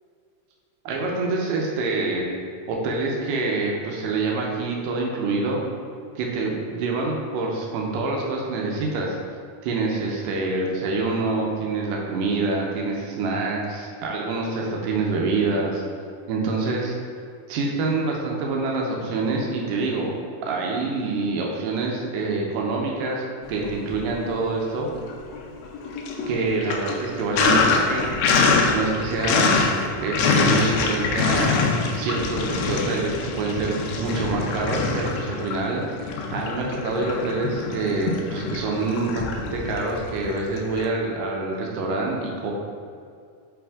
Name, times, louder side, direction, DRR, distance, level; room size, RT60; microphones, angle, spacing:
voice 1, 0.9-2.3 2.7-5.6 6.2-9.2 9.6-15.8 16.3-17.0 17.5-20.1 20.4-25.0 26.3-28.1 28.4-29.6 30.0-35.8 36.3-42.5, right 3 dB, 85° right, -1 dB, 2.4 m, -26 dB
Sink (filling or washing), 23.5-24.4 24.7-40.9, left 4 dB, 80° left, 1.6 m, -24 dB
6.0 x 4.8 x 3.6 m, 2.3 s
omnidirectional pair, 3.7 m